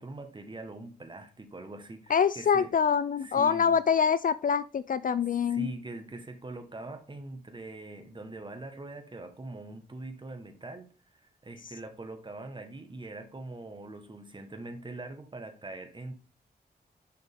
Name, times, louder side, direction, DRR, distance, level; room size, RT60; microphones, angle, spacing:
voice 1, 0.0-2.7 3.2-3.8 5.4-16.1, right 2 dB, 30° right, 1.3 m, -43 dB
voice 2, 2.1-5.7, left 7 dB, 55° left, 0.4 m, -25 dB
7.0 x 6.2 x 3.6 m
wide cardioid pair, 85°, 17 cm